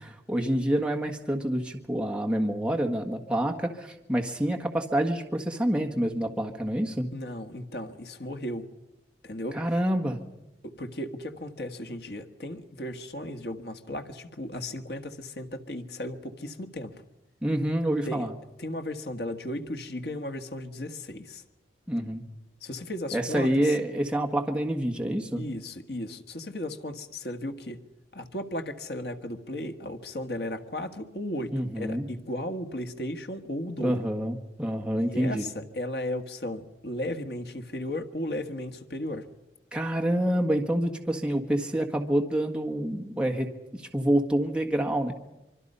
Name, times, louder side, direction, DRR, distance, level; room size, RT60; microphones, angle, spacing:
voice 1, 0.0-7.1 9.5-10.2 17.4-18.3 21.9-22.2 23.1-25.4 31.5-32.1 33.8-35.4 39.7-43.5 43.7-45.1, right 1 dB, 5° right, 1 dB, 1.6 m, -27 dB
voice 2, 7.1-8.7 9.2-9.6 10.6-16.9 18.0-18.3 18.6-21.4 22.6-23.7 25.4-27.8 28.1-34.1 35.1-39.3, left 1 dB, 65° left, 7 dB, 1.6 m, -35 dB
25.5 x 24.0 x 5.5 m, 0.93 s
head